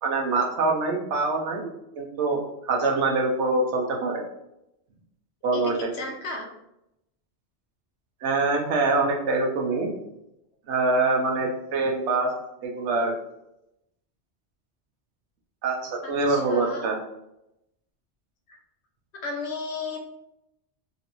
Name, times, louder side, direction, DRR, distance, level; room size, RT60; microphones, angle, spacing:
voice 1, 0.0-1.7 2.0-2.4 2.7-4.2 5.4-5.7 8.2-9.9 10.7-12.3 12.6-13.1 15.6-17.0, right 3 dB, 85° right, 1 dB, 1.0 m, -24 dB
voice 2, 5.5-6.5 16.0-16.9 18.5-18.6 19.2-20.0, left 3 dB, 70° left, 0 dB, 1.0 m, -34 dB
3.1 x 2.6 x 2.9 m, 0.85 s
omnidirectional pair, 1.2 m